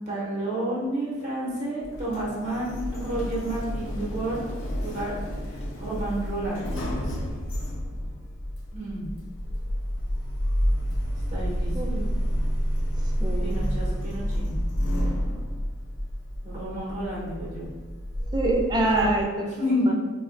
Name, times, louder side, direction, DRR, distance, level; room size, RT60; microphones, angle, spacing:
voice 1, 0.1-4.4 4.8-5.1 5.8-6.7 8.7-9.1 11.3-11.7 13.4-14.6 16.4-17.7 18.8-19.1 19.4-19.9, right 1 dB, 40° right, -6 dB, 1.0 m, -30 dB
Sliding door, 1.8-19.2, equal, 75° left, 0.6 m, -29 dB
voice 2, 11.7-12.1 13.2-13.6 18.3-19.5 19.9-20.0, right 1 dB, 20° right, 1 dB, 0.4 m, -25 dB
4.0 x 2.2 x 2.5 m, 1.3 s
head